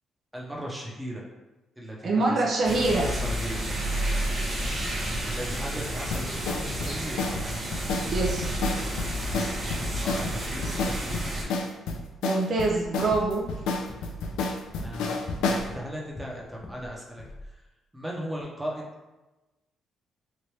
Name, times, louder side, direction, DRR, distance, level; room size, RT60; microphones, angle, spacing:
voice 1, 0.3-1.3 1.8-2.4 2.7-3.6 5.3-7.4 9.8-11.2 14.7-17.6 17.9-18.8, equal, 10° right, -3 dB, 0.8 m, -37 dB
voice 2, 2.0-3.1 8.1-8.5 12.2-13.4, right 2 dB, 55° right, -1 dB, 0.5 m, -25 dB
sound 1, 2.6-11.4, right 1 dB, 35° right, 1.0 m, -30 dB
sound 2, 6.1-15.7, left 3 dB, 90° left, 0.4 m, -30 dB
sound 3, 12.8-16.9 17.2-17.5, left 1 dB, 25° left, 0.6 m, -44 dB
3.0 x 2.5 x 3.2 m, 1.1 s
cardioid pair, 90°, 0 cm